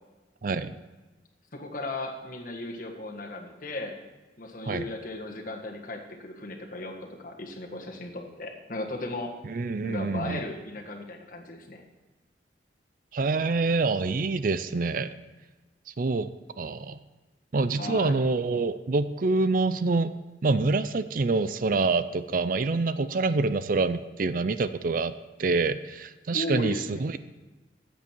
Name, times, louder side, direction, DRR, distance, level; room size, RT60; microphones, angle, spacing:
voice 1, 0.4-0.8 4.7-4.8 9.4-10.4 13.1-15.1 16.0-16.3 16.6-17.0 17.5-20.1 20.4-25.1 25.4-27.2, right 3 dB, 50° right, 13 dB, 0.5 m, -26 dB
voice 2, 1.5-4.0 4.4-9.3 9.8-11.8 17.7-18.2 26.3-27.1, left 2 dB, 50° left, 2 dB, 1.6 m, -36 dB
14.0 x 8.4 x 4.5 m, 1.2 s
head